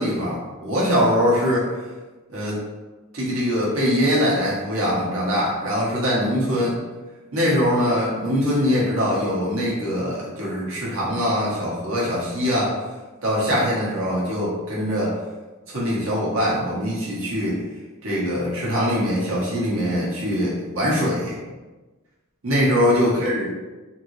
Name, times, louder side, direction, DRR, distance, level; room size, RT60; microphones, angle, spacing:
voice 1, 0.0-1.7 2.3-2.6 3.1-6.7 7.3-12.7 13.2-15.1 15.7-17.6 18.0-21.4 22.4-23.5, equal, 75° right, -7 dB, 1.3 m, -22 dB
3.6 x 2.9 x 3.1 m, 1.2 s
head